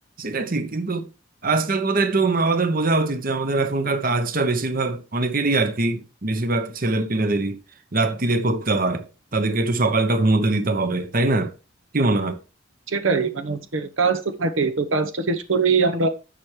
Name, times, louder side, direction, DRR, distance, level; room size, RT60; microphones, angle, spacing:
voice 1, 0.2-1.1 1.4-7.6 7.9-9.1 9.3-11.5 11.9-12.4, right 2 dB, 45° right, 1.0 m, -22 dB
voice 2, 12.9-16.1, right 4 dB, 85° right, 1.0 m, -22 dB
11.0 x 7.4 x 3.2 m
head